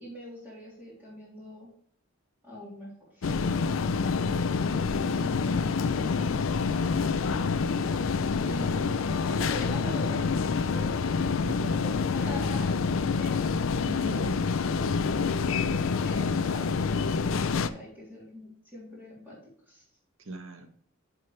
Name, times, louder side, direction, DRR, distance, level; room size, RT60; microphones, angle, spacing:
voice 1, 0.0-1.7 2.4-3.3 4.9-6.9 8.4-10.3 10.6-11.0 11.7-12.8 13.2-13.6 16.0-19.4 19.7-19.8, left 1 dB, 10° right, -7 dB, 3.2 m, -43 dB
sound 1, 3.2-17.7, left 5 dB, 70° left, 0.5 m, -27 dB
voice 2, 4.9-5.2 11.4-11.8 13.8-14.5 20.3-20.7, right 1 dB, 70° right, 6 dB, 1.1 m, -40 dB
11.0 x 4.8 x 3.2 m, 0.62 s
head